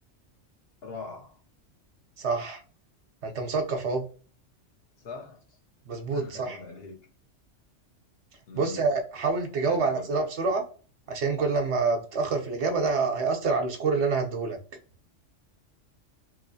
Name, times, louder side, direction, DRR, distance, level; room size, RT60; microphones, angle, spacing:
voice 1, 0.8-1.4 5.0-5.6 6.1-7.0 8.5-8.9 9.6-10.1, left 4 dB, 55° left, 0.8 m, -42 dB
voice 2, 2.2-2.6 3.2-4.0 5.9-6.6 8.5-10.6 11.1-14.6, right 4 dB, 65° right, 1.0 m, -27 dB
3.0 x 3.0 x 2.7 m
omnidirectional pair, 1.3 m